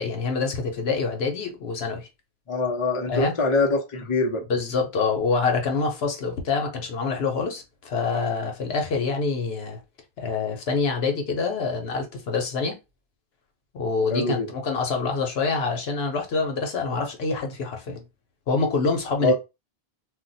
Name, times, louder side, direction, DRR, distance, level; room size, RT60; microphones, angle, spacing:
voice 1, 0.0-2.1 3.1-3.3 4.5-9.8 10.2-12.7 13.7-18.0 18.5-19.3, left 4 dB, 75° left, 1.0 m, -26 dB
voice 2, 2.5-4.4 14.1-14.5 19.2-19.3, left 2 dB, 35° left, 0.7 m, -23 dB
2.5 x 2.1 x 3.9 m
omnidirectional pair, 1.0 m